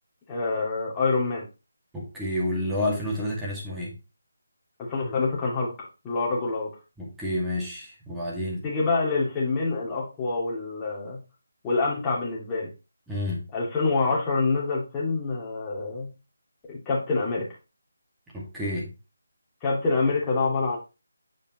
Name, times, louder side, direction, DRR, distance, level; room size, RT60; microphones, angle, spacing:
voice 1, 0.3-1.4 4.8-5.7 6.0-6.7 8.6-11.2 11.6-12.7 13.5-16.1 16.7-17.4 19.6-20.8, left 3 dB, 15° left, -4 dB, 2.3 m, -26 dB
voice 2, 1.9-3.9 7.0-8.6 13.1-13.4 18.3-18.9, left 1 dB, 5° right, -6 dB, 2.0 m, -29 dB
7.5 x 5.2 x 3.0 m, 0.29 s
figure-of-eight pair, 155°, 0 cm